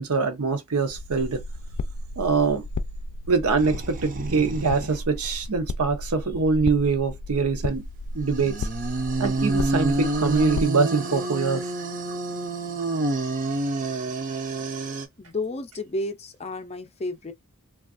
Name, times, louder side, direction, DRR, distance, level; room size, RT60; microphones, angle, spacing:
voice 1, 0.0-1.4 2.2-2.6 3.3-7.8 8.1-8.7 9.2-11.7, right 4 dB, 75° right, 0.7 m, -24 dB
sound 1, 0.9-10.7, left 2 dB, 90° left, 0.4 m, -34 dB
sound 2, 3.6-5.0 5.2-5.3 8.2-15.1, right 2 dB, 35° right, 0.5 m, -28 dB
voice 2, 15.2-17.3, left 2 dB, 30° left, 0.5 m, -31 dB
3.3 x 2.3 x 2.4 m
head